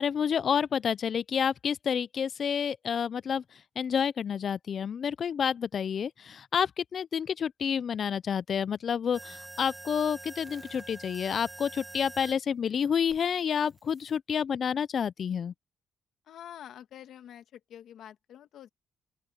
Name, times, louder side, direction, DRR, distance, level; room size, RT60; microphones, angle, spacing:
voice 1, 0.0-3.4 3.8-15.5, left 7 dB, 55° left, 0.5 m, -29 dB
sound 1, 9.1-12.4 13.1-14.2, right 2 dB, 15° right, 1.7 m, -46 dB
voice 2, 16.3-18.7, left 10 dB, 75° left, 2.0 m, -47 dB
open air
cardioid pair, 90°, 0 cm